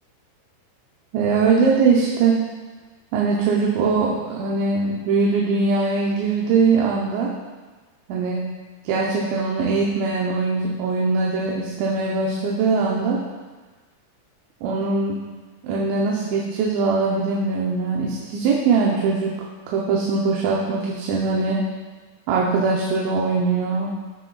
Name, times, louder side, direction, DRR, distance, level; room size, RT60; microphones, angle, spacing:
voice 1, 1.1-2.4 3.1-7.3 8.1-8.4 8.8-13.2 14.6-15.2 15.6-19.3 19.7-21.6 22.3-23.9, right 4 dB, 90° right, -3 dB, 3.1 m, -21 dB
15.5 x 5.8 x 2.3 m, 1.3 s
omnidirectional pair, 5.0 m